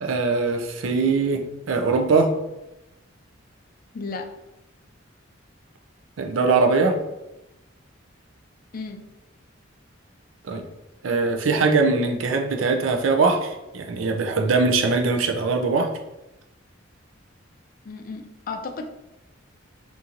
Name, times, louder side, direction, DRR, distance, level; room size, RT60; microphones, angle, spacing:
voice 1, 0.0-2.3 6.2-7.0 10.4-10.6 11.0-15.9, right 4 dB, 80° right, 4 dB, 0.5 m, -21 dB
voice 2, 3.9-4.2 8.7-9.0 17.8-18.9, left 4 dB, 45° left, 5 dB, 0.4 m, -33 dB
3.8 x 2.6 x 2.9 m, 0.93 s
head